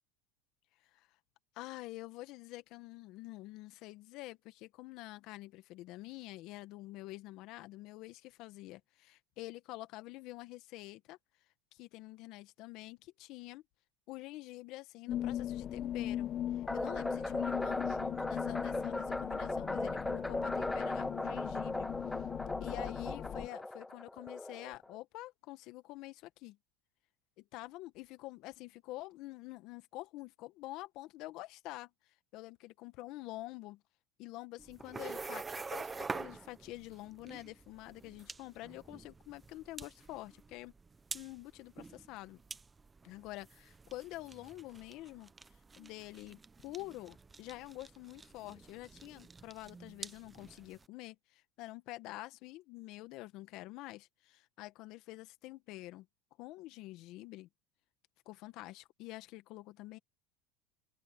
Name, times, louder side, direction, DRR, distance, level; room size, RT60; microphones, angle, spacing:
voice 1, 1.5-11.2 11.7-13.6 14.1-16.3 16.5-22.2 22.6-26.6 27.4-31.9 32.3-33.8 34.2-40.7 41.1-42.4 43.0-45.3 45.8-56.1 56.4-57.5 58.2-60.0, left 18 dB, 60° left, 1.5 m, -47 dB
sound 1, 15.1-23.5, left 11 dB, 35° left, 1.4 m, -39 dB
sound 2, 16.7-25.0, left 2 dB, 10° left, 1.1 m, -38 dB
sound 3, 34.6-50.9, right 4 dB, 15° right, 1.0 m, -47 dB
open air
supercardioid pair, 110°, 0 cm